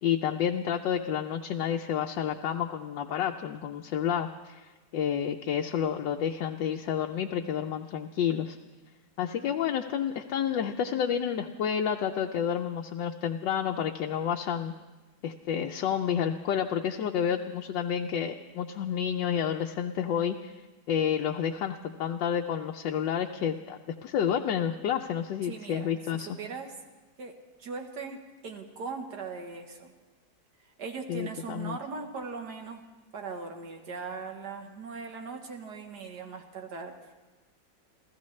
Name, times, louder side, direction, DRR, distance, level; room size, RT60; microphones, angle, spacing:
voice 1, 0.0-8.6 9.2-14.7 15.2-20.5 20.9-26.3 31.1-31.8, left 8 dB, 80° left, 3 dB, 1.3 m, -30 dB
voice 2, 25.4-26.8 27.2-29.9 30.6-32.8 33.1-37.1, right 4 dB, 65° right, 4 dB, 1.7 m, -40 dB
29.5 x 14.5 x 3.2 m, 1.2 s
omnidirectional pair, 2.0 m